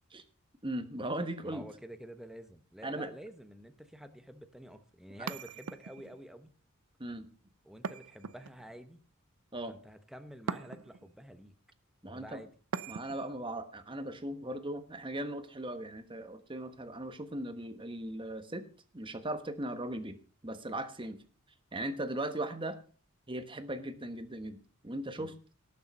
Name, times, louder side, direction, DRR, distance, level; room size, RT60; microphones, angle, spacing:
voice 1, 0.6-1.6 2.8-3.1 7.0-7.3 9.5-9.7 12.0-12.4 12.9-18.6 18.9-20.2 20.4-21.2 21.7-22.8 23.3-25.3, right 1 dB, 25° right, 9 dB, 1.2 m, -38 dB
voice 2, 1.4-6.5 7.6-9.0 9.7-11.6 12.0-12.5 25.2-25.3, equal, ahead, 8 dB, 1.0 m, -49 dB
sound 1, 5.3-6.2 7.8-8.8 10.5-11.1 12.7-13.4, right 5 dB, 70° right, 0.6 m, -40 dB
18.0 x 6.9 x 5.4 m, 0.39 s
head